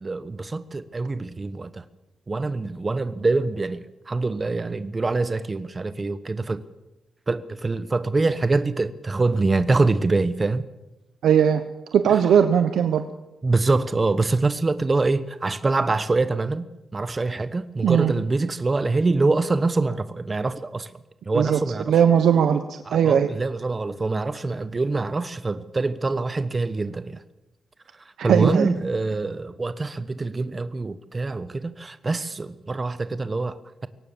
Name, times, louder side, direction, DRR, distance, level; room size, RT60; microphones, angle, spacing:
voice 1, 0.0-1.8 2.3-6.6 7.3-10.6 12.1-12.2 13.4-16.6 16.9-20.9 21.3-21.9 22.9-27.2 28.2-33.9, right 3 dB, 25° right, 1.0 m, -25 dB
voice 2, 11.2-11.6 11.9-13.0 17.8-18.1 21.3-21.6 21.9-22.6 22.9-23.3 28.2-28.7, right 8 dB, 85° right, 1.1 m, -18 dB
22.5 x 18.5 x 7.2 m
cardioid pair, 115°, 0 cm